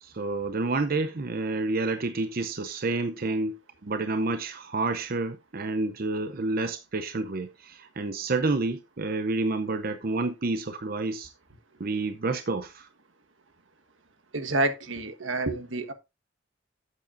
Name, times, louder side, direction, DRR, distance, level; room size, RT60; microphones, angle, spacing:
voice 1, 0.0-11.3 11.8-12.9, right 3 dB, 50° right, 0.7 m, -29 dB
voice 2, 14.3-15.9, right 2 dB, 80° right, 1.4 m, -28 dB
11.5 x 8.4 x 2.6 m
head